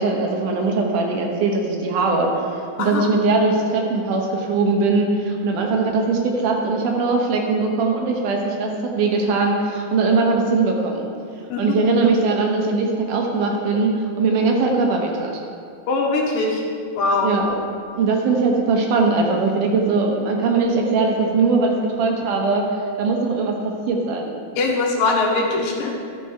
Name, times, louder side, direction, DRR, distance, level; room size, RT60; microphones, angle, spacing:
voice 1, 0.0-11.1 11.6-15.3 17.2-17.6 17.9-22.7 23.0-24.4, right 3 dB, 75° right, 1 dB, 2.5 m, -20 dB
voice 2, 2.8-3.1 11.5-11.8 15.9-16.6 16.9-17.3 24.6-26.0, left 3 dB, 85° left, 0 dB, 2.9 m, -21 dB
12.5 x 6.5 x 4.5 m, 2.3 s
omnidirectional pair, 3.9 m